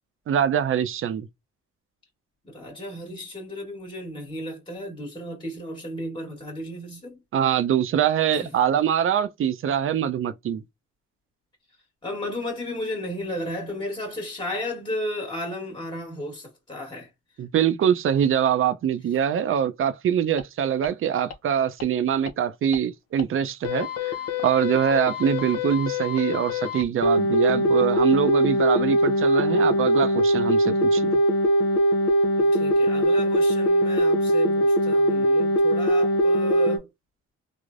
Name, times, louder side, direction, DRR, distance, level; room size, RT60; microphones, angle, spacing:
voice 1, 0.3-1.3 7.3-10.6 17.4-24.1 24.4-31.1, right 9 dB, 45° right, 0.5 m, -24 dB
voice 2, 2.4-7.2 8.3-8.6 12.0-17.1 32.4-36.9, left 1 dB, 15° left, 1.3 m, -34 dB
sound 1, 20.4-20.5 20.8-20.9 21.3-21.4 21.8-21.9 22.3-22.4 22.7-22.8 23.2-23.3 23.6-36.8, equal, 55° left, 0.6 m, -22 dB
3.2 x 2.0 x 2.5 m
cardioid pair, 90°, 30 cm